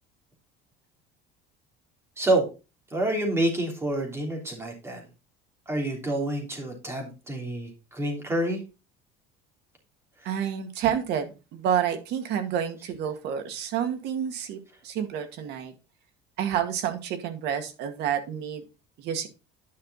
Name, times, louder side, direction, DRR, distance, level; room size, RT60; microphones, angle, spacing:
voice 1, 2.9-5.0 5.7-8.6 10.2-10.3, right 1 dB, 15° right, 1 dB, 3.0 m, -28 dB
voice 2, 10.2-15.7 16.4-18.6 19.0-19.3, right 9 dB, 60° right, 8 dB, 1.9 m, -29 dB
10.5 x 5.7 x 4.1 m, 0.30 s
cardioid pair, 160°, 19 cm